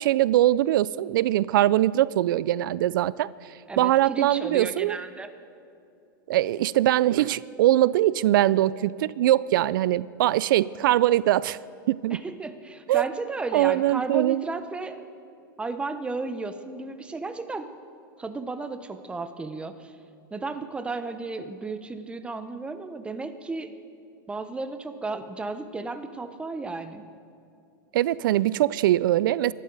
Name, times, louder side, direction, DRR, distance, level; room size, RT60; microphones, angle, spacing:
voice 1, 0.0-3.3 3.8-5.0 6.3-11.6 11.9-12.2 12.9-13.0 13.5-14.4 27.9-29.5, right 14 dB, 70° right, 20 dB, 0.4 m, -22 dB
voice 2, 3.7-5.3 12.1-15.0 15.6-17.7 18.2-19.9 20.3-23.7 24.3-27.0, right 3 dB, 10° right, 9 dB, 0.8 m, -34 dB
23.5 x 12.5 x 4.0 m, 2.6 s
supercardioid pair, 130°, 11 cm